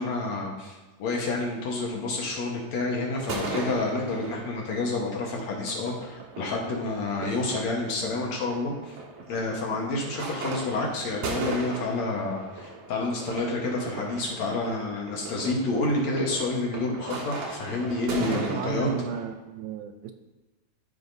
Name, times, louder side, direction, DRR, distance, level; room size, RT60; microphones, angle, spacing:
voice 1, 0.0-9.0 9.3-18.9, left 2 dB, 60° left, -1 dB, 2.1 m, -29 dB
sound 1, 3.2-19.3, right 3 dB, 60° right, 2.1 m, -38 dB
voice 2, 18.2-20.1, right 8 dB, 80° right, 7 dB, 2.3 m, -33 dB
13.5 x 5.7 x 2.7 m, 1.2 s
omnidirectional pair, 4.2 m